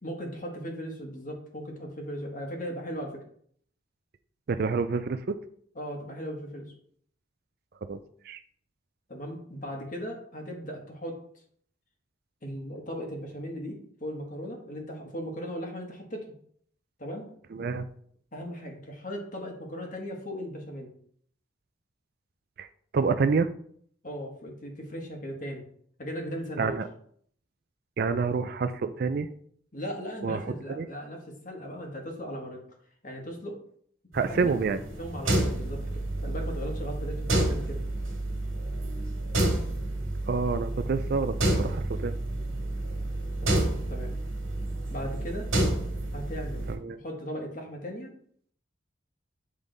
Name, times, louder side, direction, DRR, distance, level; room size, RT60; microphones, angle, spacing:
voice 1, 0.0-3.2 5.7-6.7 9.1-11.2 12.4-16.3 17.0-17.3 18.3-20.9 24.0-25.6 26.0-26.8 29.7-32.6 33.0-33.6 34.3-34.6 34.8-37.8 43.4-44.1 44.9-45.5 46.1-46.6 46.9-48.1, equal, 40° left, 1 dB, 1.5 m, -37 dB
voice 2, 4.5-5.4 7.8-8.0 8.3-8.4 17.5-17.9 22.6-22.7 22.9-23.5 26.6-26.9 28.0-29.3 30.2-30.4 30.8-30.9 34.1-34.8 40.3-42.2 46.7-47.0, right 4 dB, 50° right, 11 dB, 0.4 m, -28 dB
sound 1, 34.1-46.7, right 1 dB, 80° right, 1.9 m, -30 dB
8.1 x 3.6 x 3.9 m, 0.62 s
head